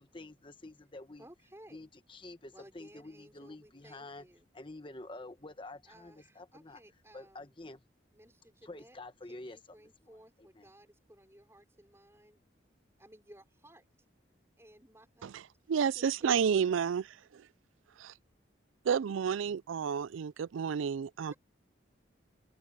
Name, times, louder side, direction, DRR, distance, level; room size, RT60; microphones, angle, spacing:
voice 1, 0.0-1.3 1.7-4.2 4.5-6.8 7.1-7.8 8.6-9.6 10.4-10.7, left 2 dB, 25° left, 1.1 m, -48 dB
voice 2, 1.2-1.9 2.5-4.5 5.8-7.6 8.1-9.0 9.3-12.4 13.0-13.8 14.6-15.3 15.9-16.9 21.3-21.4, right 1 dB, 15° right, 5.2 m, -57 dB
voice 3, 15.7-17.0 17.3-17.5 18.0-18.1 18.8-21.3, right 7 dB, 85° right, 0.4 m, -30 dB
head